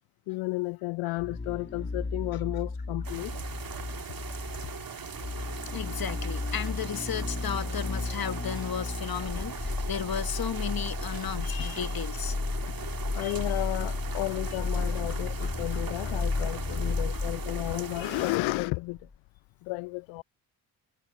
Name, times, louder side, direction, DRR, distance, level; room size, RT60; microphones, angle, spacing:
voice 1, 0.3-3.4 11.4-11.5 12.5-19.0 19.6-20.2, left 23 dB, 70° left, 0.5 m, -33 dB
sound 1, 1.2-18.7 19.0-19.1, left 3 dB, 25° left, 2.2 m, -33 dB
sound 2, 3.0-18.4, right 6 dB, 45° right, 2.5 m, -40 dB
voice 2, 5.7-12.4 13.2-13.4, left 8 dB, 45° left, 1.4 m, -34 dB
hypercardioid pair, 40°, 48 cm